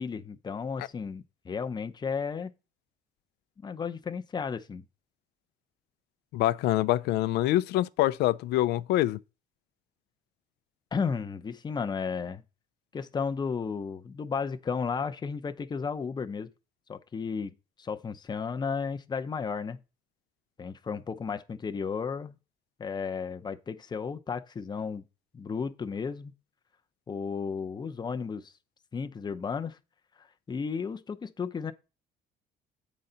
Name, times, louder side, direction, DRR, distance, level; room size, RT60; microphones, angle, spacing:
voice 1, 0.0-2.5 3.6-4.8 10.9-12.4 12.9-16.5 16.9-19.8 20.6-22.4 22.8-25.1 25.3-26.3 27.1-28.5 28.9-29.8 30.2-31.7, left 5 dB, 25° left, 0.7 m, -33 dB
voice 2, 6.3-9.2, left 15 dB, 80° left, 0.4 m, -25 dB
8.4 x 4.0 x 5.6 m
cardioid pair, 110°, 17 cm